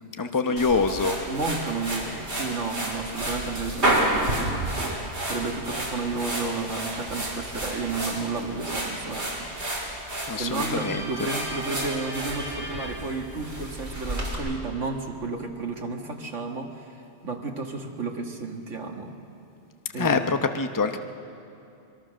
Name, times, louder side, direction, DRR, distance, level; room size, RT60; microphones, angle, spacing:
voice 1, 0.2-1.2 10.3-11.0 20.0-21.0, left 4 dB, 20° left, 7 dB, 0.8 m, -25 dB
sound 1, 0.6-14.3, right 1 dB, 65° right, 4.2 m, -31 dB
voice 2, 1.3-9.5 10.3-19.2 19.9-20.2, right 4 dB, 80° right, 2 dB, 2.1 m, -32 dB
sound 2, 5.9-12.9, right 1 dB, 40° right, 3.6 m, -41 dB
24.0 x 23.0 x 6.4 m, 2.7 s
omnidirectional pair, 1.2 m